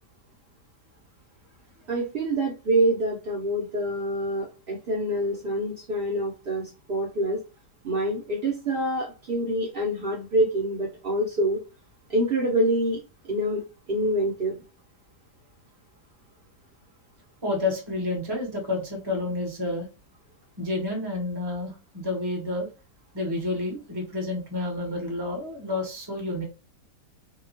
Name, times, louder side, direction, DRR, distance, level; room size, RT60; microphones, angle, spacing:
voice 1, 1.9-7.4 7.8-11.6 12.1-13.0 13.2-13.6 13.9-14.6, right 1 dB, 75° right, -3 dB, 0.5 m, -26 dB
voice 2, 17.4-19.9 20.6-22.7 23.1-26.4, left 2 dB, 25° right, 0 dB, 0.6 m, -29 dB
2.8 x 2.3 x 2.6 m, 0.30 s
omnidirectional pair, 1.8 m